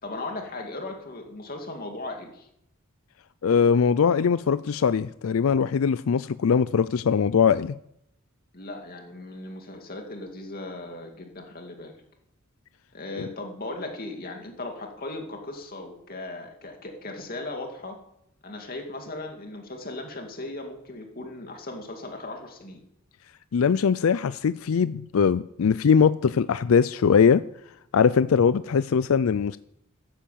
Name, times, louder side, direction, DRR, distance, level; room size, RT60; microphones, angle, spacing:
voice 1, 0.0-2.5 8.5-11.9 12.9-18.0 18.4-22.8, left 2 dB, 45° left, 3 dB, 2.5 m, -37 dB
voice 2, 3.4-7.7 13.2-13.3 23.5-27.4 27.9-29.6, left 6 dB, 80° left, 15 dB, 0.4 m, -21 dB
13.5 x 10.0 x 7.4 m, 0.77 s
head